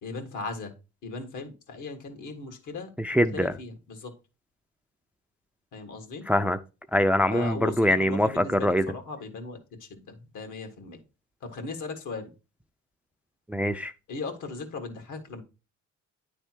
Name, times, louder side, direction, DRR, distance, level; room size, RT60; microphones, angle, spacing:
voice 1, 0.0-0.7 1.0-4.1 5.7-6.2 7.3-11.0 11.4-12.3 14.1-15.4, left 3 dB, 80° left, 1.5 m, -38 dB
voice 2, 3.0-3.5 6.3-6.6 6.9-8.9 13.5-13.9, equal, 5° right, 0.3 m, -23 dB
9.6 x 3.4 x 4.4 m
cardioid pair, 90°, 30 cm